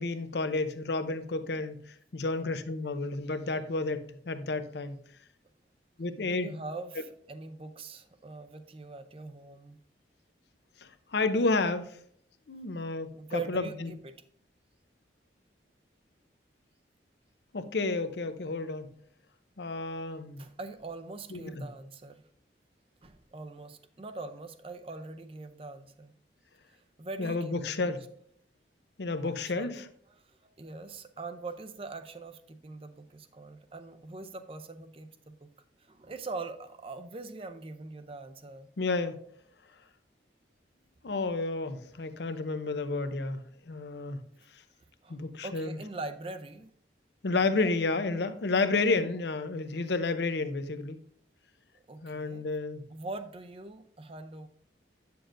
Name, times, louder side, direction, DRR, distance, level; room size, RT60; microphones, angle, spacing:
voice 1, 0.0-5.0 6.0-6.6 11.1-12.0 12.5-13.9 17.5-18.9 19.6-20.5 21.3-21.7 27.2-28.0 29.0-29.8 38.8-39.2 41.0-44.2 45.1-45.8 47.2-51.0 52.0-52.9, left 3 dB, 65° left, 10 dB, 0.6 m, -31 dB
voice 2, 6.2-9.8 13.1-14.2 20.4-22.2 23.0-26.1 26.7-27.9 29.2-29.7 30.2-35.5 35.8-38.7 45.0-46.7 47.5-47.7 51.9-52.5 52.9-54.5, right 3 dB, 30° right, 9 dB, 0.5 m, -42 dB
8.8 x 6.9 x 2.6 m, 0.64 s
head